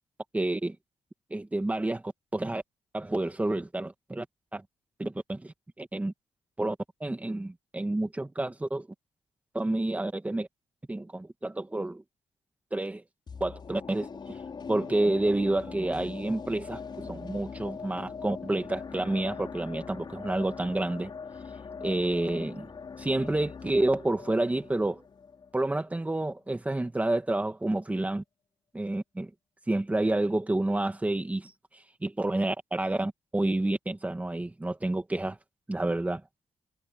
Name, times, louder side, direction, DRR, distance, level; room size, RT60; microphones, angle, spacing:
voice 1, 0.3-0.8 1.3-2.0 2.3-2.6 2.9-4.3 4.5-4.6 5.0-6.1 6.6-6.8 7.0-8.9 9.5-10.5 10.9-12.0 12.7-13.0 13.4-14.1 14.7-21.1 21.8-22.7 23.0-25.0 25.5-28.2 28.7-29.3 29.7-31.5 32.0-35.4 35.7-36.2, right 2 dB, 15° right, 2.4 m, -29 dB
sound 1, 13.3-26.4 26.7-26.8, left 5 dB, 45° left, 6.3 m, -42 dB
cardioid pair, 115°, 11 cm